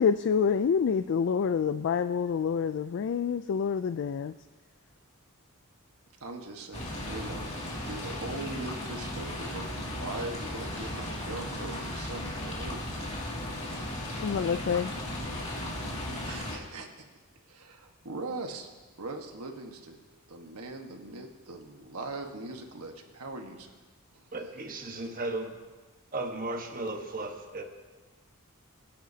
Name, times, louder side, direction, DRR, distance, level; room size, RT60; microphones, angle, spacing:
voice 1, 0.0-4.3 14.2-14.9, left 6 dB, 55° left, 10 dB, 0.3 m, -27 dB
voice 2, 6.2-7.5 7.8-12.8 16.2-17.0 17.5-18.7 19.0-20.0 20.3-23.7 24.1-24.3, right 2 dB, 75° right, 3 dB, 1.4 m, -40 dB
sound 1, 6.7-16.6, left 1 dB, 30° left, 2.3 m, -36 dB
voice 3, 24.3-25.6 26.1-27.6, right 2 dB, 40° right, 4 dB, 1.3 m, -35 dB
24.5 x 10.0 x 2.8 m, 1.3 s
head